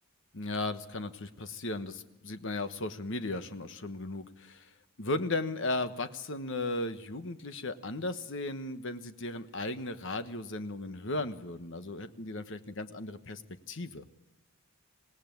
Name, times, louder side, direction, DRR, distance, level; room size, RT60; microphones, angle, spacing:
voice 1, 0.3-4.7 5.0-13.4 13.7-14.0, left 2 dB, 60° left, 10 dB, 1.3 m, -36 dB
26.5 x 18.0 x 9.4 m, 1.0 s
head